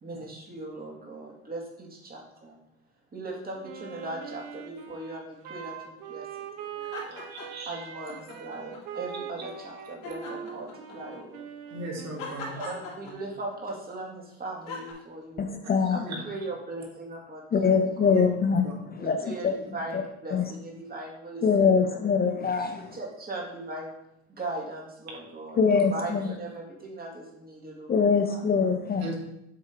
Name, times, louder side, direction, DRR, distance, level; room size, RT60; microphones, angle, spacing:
voice 1, 0.0-2.5 3.1-6.3 6.6-7.2 7.7-10.7 10.9-11.8 12.4-15.4 15.9-18.2 19.0-21.8 22.9-23.9 24.3-28.4, right 2 dB, 25° right, -1 dB, 2.2 m, -39 dB
Wind instrument woodwind instrument, 3.6-12.6, right 7 dB, 75° right, 1.1 m, -42 dB
sound 1, 6.8-7.7 8.0-9.0 10.0-11.2 12.2-13.6 14.7-14.9, left 3 dB, 75° left, 2.8 m, -40 dB
voice 2, 7.3-7.8 11.7-12.7 16.1-16.2 18.1-18.2 18.6-18.7 25.1-25.2 29.0-29.1, right 2 dB, 50° right, -1 dB, 2.2 m, -37 dB
voice 3, 15.4-16.0 17.5-19.5 19.9-20.0 20.3-20.5 21.4-22.8 25.6-26.2 27.9-29.1, left 5 dB, 30° left, 6 dB, 0.6 m, -23 dB
7.6 x 3.6 x 4.6 m, 0.81 s
supercardioid pair, 95°, 33 cm